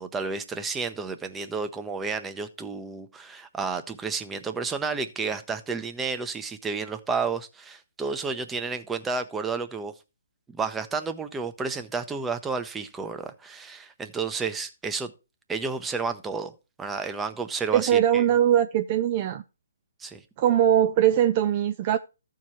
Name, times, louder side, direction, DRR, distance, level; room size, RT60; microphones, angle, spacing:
voice 1, 0.0-9.9 10.5-15.1 15.5-16.5 16.8-18.2 20.0-20.2, right 4 dB, 10° right, 0.7 m, -31 dB
voice 2, 17.7-19.4 20.4-22.0, right 11 dB, 35° right, 0.4 m, -21 dB
13.5 x 4.7 x 4.3 m
figure-of-eight pair, 140°, 0 cm